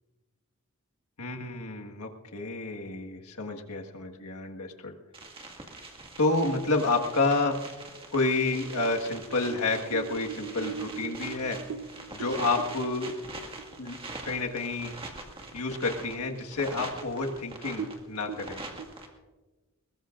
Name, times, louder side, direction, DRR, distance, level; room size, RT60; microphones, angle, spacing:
voice 1, 1.2-4.9 6.2-7.6 8.1-11.6 12.1-13.1 13.8-14.0 14.2-14.9 15.5-18.6, left 3 dB, 85° left, 2 dB, 1.6 m, -29 dB
sound 1, 5.1-19.1, right 2 dB, 25° right, 1.9 m, -43 dB
sound 2, 8.5-14.2 14.6-14.7 15.1-15.6 16.0-16.1 16.8-16.9 17.2-17.3 17.7-18.9, right 7 dB, 80° right, 1.0 m, -40 dB
21.5 x 21.0 x 2.6 m, 1.2 s
head